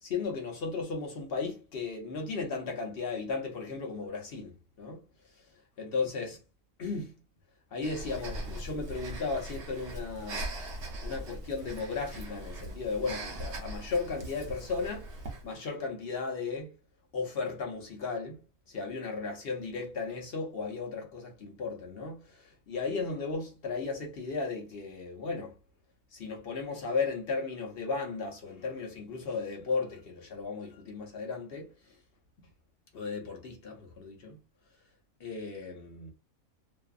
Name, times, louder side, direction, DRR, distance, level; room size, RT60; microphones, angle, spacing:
voice 1, 0.0-5.1 5.8-6.4 6.8-7.1 7.7-10.5 11.0-15.1 15.4-16.7 17.1-25.5 26.1-31.7 32.4-32.5 32.9-34.4 35.2-36.1, left 4 dB, 55° left, 0.7 m, -35 dB
Breathing, 7.8-15.5, right 1 dB, 60° right, 0.9 m, -40 dB
2.6 x 2.3 x 2.4 m
omnidirectional pair, 1.5 m